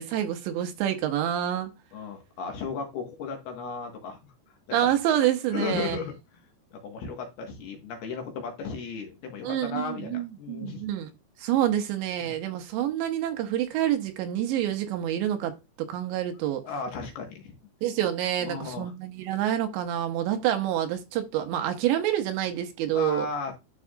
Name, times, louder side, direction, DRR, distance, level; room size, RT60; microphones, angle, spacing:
voice 1, 0.0-1.7 4.7-6.0 9.4-11.1 11.4-16.6 17.8-23.3, right 11 dB, 80° right, 3.1 m, -27 dB
voice 2, 1.9-4.3 5.5-6.1 6.7-10.9 12.2-12.3 16.6-17.5 18.4-18.9 22.9-23.5, left 5 dB, 65° left, 3.1 m, -35 dB
11.5 x 4.7 x 2.4 m
omnidirectional pair, 5.4 m